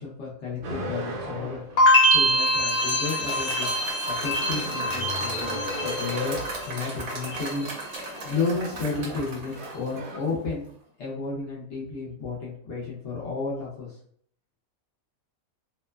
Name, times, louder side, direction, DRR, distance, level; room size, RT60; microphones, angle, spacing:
voice 1, 0.0-1.6 2.1-3.8 4.0-6.4 6.6-7.7 8.2-10.7 11.0-14.0, left 4 dB, 60° left, -6 dB, 0.8 m, -32 dB
sound 1, 0.6-1.9 4.3-6.7 8.8-9.2 9.5-10.2, left 1 dB, 80° right, 0.4 m, -35 dB
sound 2, 1.8-6.8 7.1-7.7, equal, 90° left, 1.1 m, -24 dB
Applause / Crowd, 2.2-10.4, right 2 dB, 65° right, 1.0 m, -37 dB
2.9 x 2.1 x 2.2 m, 0.64 s
omnidirectional pair, 1.5 m